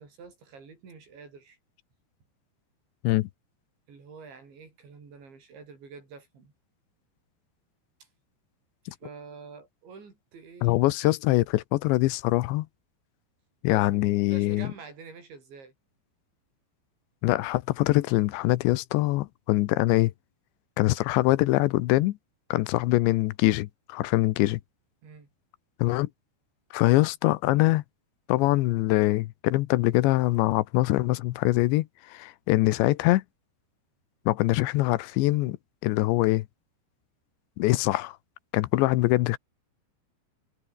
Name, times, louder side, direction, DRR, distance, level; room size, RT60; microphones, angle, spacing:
voice 1, 0.0-1.6 3.9-6.5 8.0-8.1 8.9-10.8 13.7-15.7 25.0-25.3, right 5 dB, 80° right, 9.3 m, -47 dB
voice 2, 10.6-12.7 13.6-14.7 17.2-20.1 20.8-22.2 22.5-24.6 25.8-26.1 26.7-27.8 28.3-33.2 34.3-35.6 35.8-36.4 37.6-38.2 38.5-39.4, left 18 dB, 80° left, 3.1 m, -23 dB
omnidirectional pair, 5.2 m